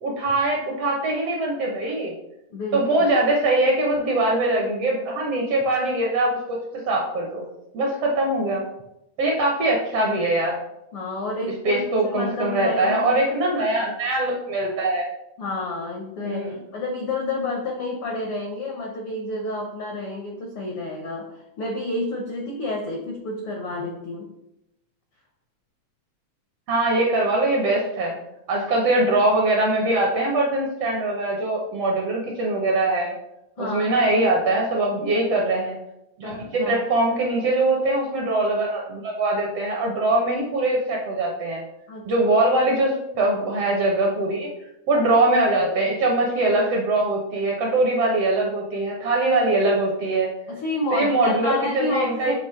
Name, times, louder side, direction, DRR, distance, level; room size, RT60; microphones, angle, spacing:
voice 1, 0.0-2.1 2.7-6.6 6.8-7.4 7.7-8.6 9.2-10.6 11.6-15.1 16.2-16.5 26.7-28.1 28.5-33.2 33.6-35.8 36.2-41.6 42.0-44.5 44.9-50.3 50.9-52.3, right 2 dB, 70° right, 0 dB, 1.5 m, -22 dB
voice 2, 2.5-3.1 10.9-13.2 15.4-24.3 33.6-34.0 36.2-36.8 41.9-42.1 50.5-52.3, left 2 dB, 75° left, 0 dB, 1.2 m, -30 dB
6.5 x 3.0 x 5.6 m, 0.85 s
omnidirectional pair, 3.7 m